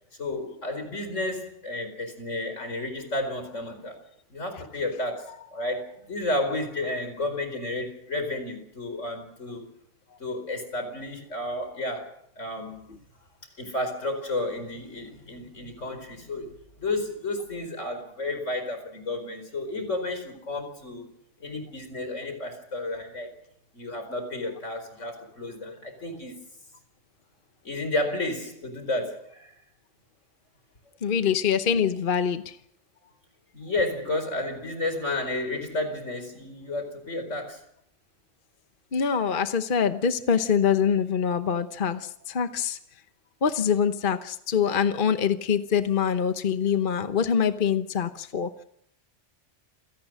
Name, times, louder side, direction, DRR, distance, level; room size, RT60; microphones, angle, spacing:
voice 1, 0.2-4.0 4.3-9.7 10.2-13.0 13.6-21.1 21.4-23.3 23.7-26.3 27.6-29.6 33.5-37.6, left 2 dB, 80° left, 7 dB, 5.0 m, -32 dB
voice 2, 31.0-32.6 38.9-42.8 43.4-48.6, left 7 dB, 45° left, 9 dB, 1.1 m, -24 dB
28.0 x 17.5 x 6.3 m, 0.71 s
omnidirectional pair, 1.2 m